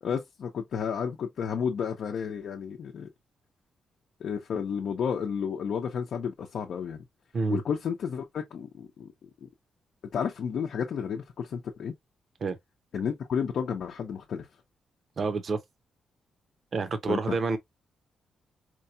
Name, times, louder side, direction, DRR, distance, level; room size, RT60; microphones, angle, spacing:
voice 1, 0.0-3.1 4.2-7.0 7.5-9.1 10.1-11.9 12.9-14.5 17.1-17.3, left 7 dB, 60° left, 0.7 m, -32 dB
voice 2, 15.2-15.6 16.7-17.6, right 4 dB, 45° right, 0.7 m, -28 dB
4.5 x 2.2 x 2.7 m
cardioid pair, 135°, 0 cm